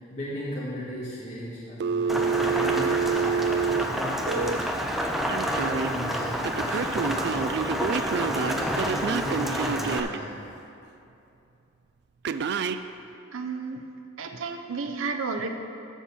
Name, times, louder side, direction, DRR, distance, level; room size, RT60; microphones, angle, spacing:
voice 1, 0.1-4.6 5.4-7.7 8.2-10.4, equal, 35° left, -7 dB, 1.4 m, -37 dB
Telephone, 1.8-4.6 5.3-5.9 6.4-10.2 12.3-12.8, right 5 dB, 55° right, 0.3 m, -27 dB
Rain, 2.1-10.0, equal, ahead, 0.5 m, -29 dB
voice 2, 13.3-13.8 14.2-15.5, right 4 dB, 90° right, 5 dB, 0.7 m, -32 dB
12.0 x 4.3 x 6.9 m, 2.7 s
head